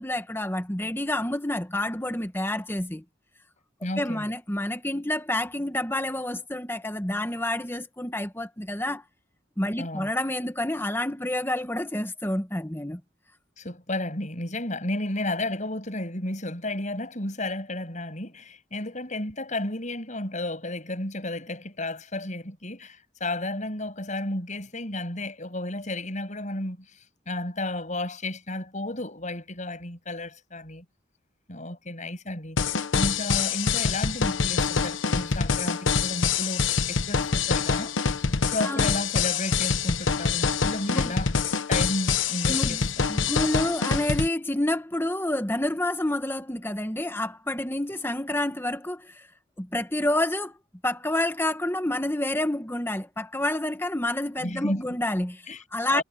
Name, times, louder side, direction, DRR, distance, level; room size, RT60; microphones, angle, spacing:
voice 1, 0.0-3.0 4.0-9.0 9.6-13.0 38.6-38.9 40.9-41.1 42.5-49.3 49.6-50.6 50.8-56.0, left 1 dB, 10° left, 1.5 m, -28 dB
voice 2, 3.8-4.3 9.8-10.1 13.6-26.9 27.3-30.8 31.5-32.6 32.9-37.9 38.5-41.3 41.7-42.8 54.4-54.8 55.5-55.6 55.9-56.0, left 1 dB, 40° left, 7.9 m, -32 dB
sound 1, 32.6-44.3, left 5 dB, 85° left, 1.0 m, -25 dB
head